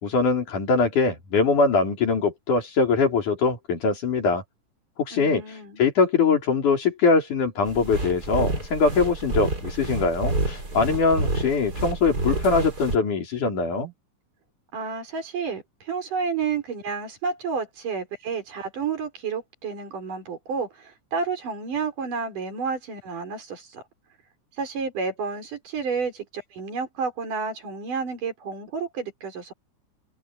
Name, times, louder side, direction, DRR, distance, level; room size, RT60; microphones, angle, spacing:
voice 1, 0.0-4.4 5.0-5.4 5.8-13.9, left 4 dB, 70° left, 5.9 m, -22 dB
voice 2, 5.1-5.8 14.7-23.8 24.6-29.5, right 5 dB, 80° right, 6.4 m, -30 dB
sound 1, 7.6-13.0, right 2 dB, 30° right, 5.2 m, -29 dB
open air
omnidirectional pair, 3.7 m